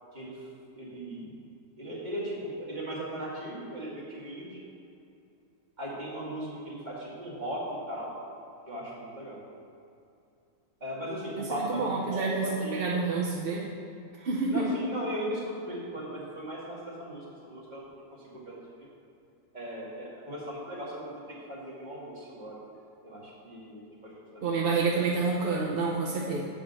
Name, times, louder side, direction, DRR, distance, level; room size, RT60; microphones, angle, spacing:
voice 1, 0.7-1.3 1.8-4.6 5.8-7.6 7.9-8.1 8.7-9.4 10.8-12.9 14.5-18.0 18.3-18.9 19.5-21.2 21.5-22.6 23.0-24.7, right 1 dB, 30° right, -6 dB, 2.0 m, -38 dB
voice 2, 11.4-12.5 12.7-13.7 14.2-14.7 24.4-26.4, right 4 dB, 50° right, -3 dB, 0.7 m, -28 dB
7.9 x 5.0 x 6.7 m, 2.6 s
omnidirectional pair, 1.6 m